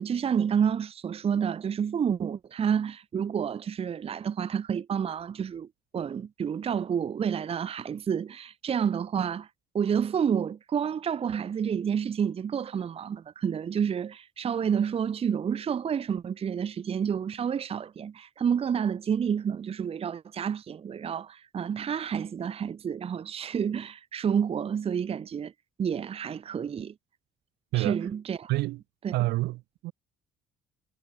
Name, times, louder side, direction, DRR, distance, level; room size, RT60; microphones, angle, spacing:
voice 1, 0.0-5.7 5.9-9.5 9.7-25.5 25.8-26.9 27.7-28.5 29.0-29.1, right 7 dB, 35° right, 0.9 m, -29 dB
voice 2, 28.5-28.8 29.1-29.9, right 19 dB, 85° right, 2.3 m, -28 dB
cardioid pair, 110°, 17 cm